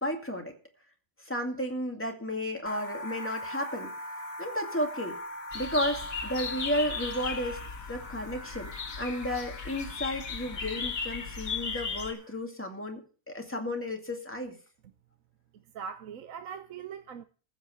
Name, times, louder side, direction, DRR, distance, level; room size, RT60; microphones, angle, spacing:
voice 1, 0.0-0.5 1.3-3.9 4.4-5.2 5.5-7.6 7.9-8.7 9.0-13.0 13.3-14.6, equal, 10° left, 2.2 m, -33 dB
sound 1, 2.7-12.4, left 1 dB, 50° left, 1.7 m, -42 dB
sound 2, 5.5-12.1, left 5 dB, 80° left, 2.0 m, -37 dB
voice 2, 15.5-17.2, right 7 dB, 75° right, 1.2 m, -41 dB
15.0 x 5.7 x 7.8 m
omnidirectional pair, 1.5 m